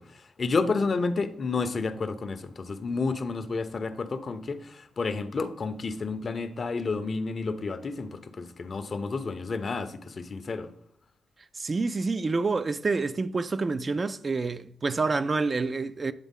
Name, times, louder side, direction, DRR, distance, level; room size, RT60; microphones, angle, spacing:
voice 1, 0.0-10.7, left 4 dB, 50° left, 0.5 m, -30 dB
voice 2, 11.6-16.1, right 3 dB, 40° right, 0.3 m, -28 dB
8.1 x 3.5 x 3.6 m
supercardioid pair, 50°, 0 cm